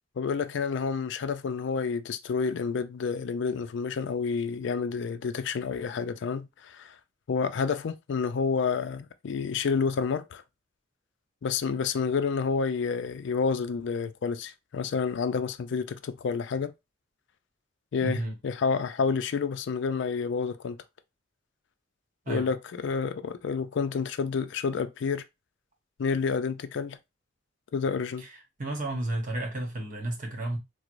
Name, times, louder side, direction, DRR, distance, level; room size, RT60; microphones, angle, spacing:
voice 1, 0.2-7.0 7.3-10.4 11.4-16.7 17.9-20.8 22.3-25.2 26.0-27.0 27.7-28.3, left 5 dB, 65° left, 0.4 m, -29 dB
voice 2, 18.0-18.3 22.3-22.5 28.2-28.3 28.6-30.6, right 1 dB, 40° right, 0.9 m, -32 dB
4.5 x 2.0 x 2.5 m
head